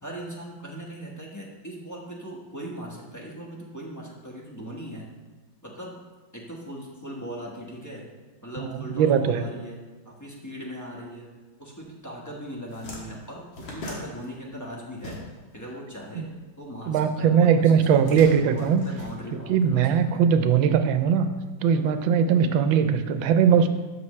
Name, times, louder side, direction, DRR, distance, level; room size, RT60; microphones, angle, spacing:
voice 1, 0.0-5.1 5.6-6.0 6.3-8.1 8.4-9.8 10.0-15.2 15.5-16.3 16.6-20.3, equal, 10° left, -3 dB, 1.1 m, -39 dB
voice 2, 9.0-9.4 16.2-16.3 16.9-18.8 19.5-21.3 21.6-23.7, right 7 dB, 85° right, 9 dB, 1.4 m, -20 dB
sound 1, 12.5-15.7 15.9-17.1 17.8-19.8, left 1 dB, 75° left, 2.3 m, -40 dB
12.5 x 6.2 x 3.2 m, 1.3 s
omnidirectional pair, 2.1 m